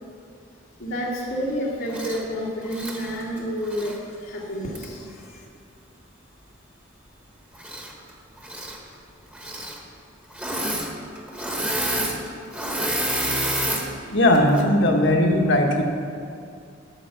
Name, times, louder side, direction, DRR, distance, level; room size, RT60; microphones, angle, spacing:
voice 1, 0.8-5.4, equal, 90° left, -6 dB, 2.0 m, -30 dB
Engine / Mechanisms, 1.9-2.2 2.6-4.0 4.7-4.9 7.5-8.1 8.4-8.8 9.3-9.8 10.3-10.9 11.1-13.9 14.3-14.6, right 1 dB, 5° right, 1.1 m, -28 dB
voice 2, 14.1-15.8, left 1 dB, 65° left, 1 dB, 1.4 m, -18 dB
11.0 x 7.1 x 5.8 m, 2.4 s
head